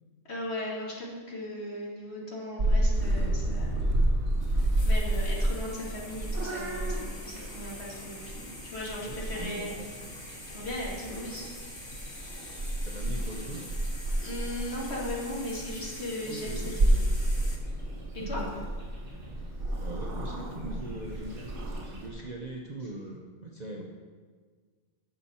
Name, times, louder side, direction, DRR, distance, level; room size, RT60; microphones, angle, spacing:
voice 1, 0.2-3.9 4.5-9.7 10.2-11.6 14.2-17.0 18.1-18.4 22.2-22.3, left 1 dB, 50° left, -4 dB, 2.3 m, -38 dB
Purr / Meow, 2.6-22.1, right 1 dB, 55° right, 2.0 m, -31 dB
sound 1, 4.4-17.6, left 1 dB, 20° left, 0.9 m, -45 dB
voice 2, 9.0-9.9 12.8-13.7 16.2-17.0 18.2-18.7 19.8-21.5 21.8-23.8, right 2 dB, 40° right, -1 dB, 0.7 m, -41 dB
11.0 x 6.9 x 4.3 m, 1.5 s
omnidirectional pair, 1.5 m